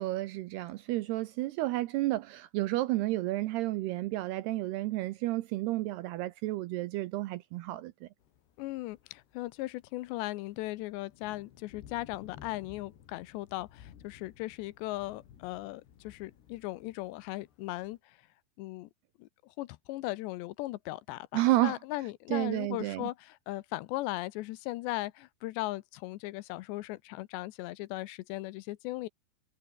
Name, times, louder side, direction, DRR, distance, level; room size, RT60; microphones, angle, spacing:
voice 1, 0.0-8.1 21.3-21.8 22.3-23.1, right 17 dB, 80° right, 2.5 m, -31 dB
sound 1, 8.2-18.0, left 9 dB, 65° left, 4.6 m, -57 dB
voice 2, 8.6-18.2 18.6-18.9 19.2-29.1, left 18 dB, 80° left, 2.9 m, -38 dB
omnidirectional pair, 5.2 m